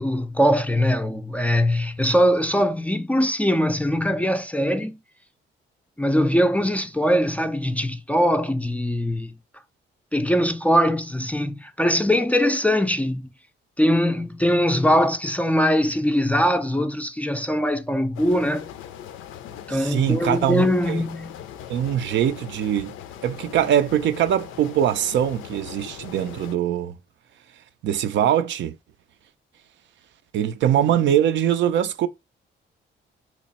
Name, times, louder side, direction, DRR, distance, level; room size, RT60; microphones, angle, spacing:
voice 1, 0.0-5.0 6.0-9.3 10.1-13.3 13.8-18.7 19.7-21.3, equal, 5° left, 0.4 m, -21 dB
sound 1, 18.1-26.6, left 10 dB, 90° left, 0.4 m, -40 dB
voice 2, 19.7-21.0 21.7-22.9 23.2-27.0 27.8-28.7 30.3-32.1, right 10 dB, 70° right, 0.4 m, -22 dB
3.0 x 2.2 x 4.0 m
cardioid pair, 90°, 20 cm